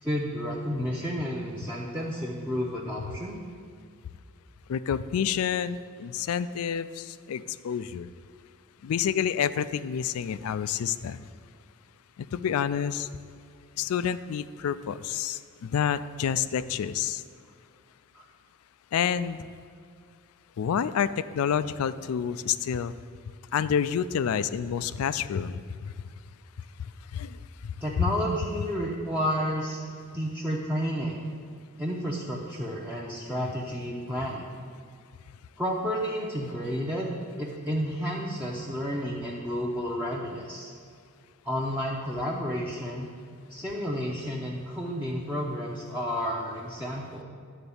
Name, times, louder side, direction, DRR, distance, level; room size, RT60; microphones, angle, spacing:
voice 1, 0.0-3.4 18.1-18.2 27.8-29.8 30.1-31.2 31.8-34.5 35.6-40.7 41.4-43.1 43.5-47.2, equal, 10° right, -4 dB, 0.7 m, -31 dB
voice 2, 4.7-8.1 8.8-11.3 12.2-13.1 13.8-17.2 18.9-19.5 20.6-22.9 23.5-25.9 27.1-27.7, left 8 dB, 70° left, 15 dB, 0.3 m, -29 dB
10.0 x 3.9 x 7.0 m, 2.2 s
head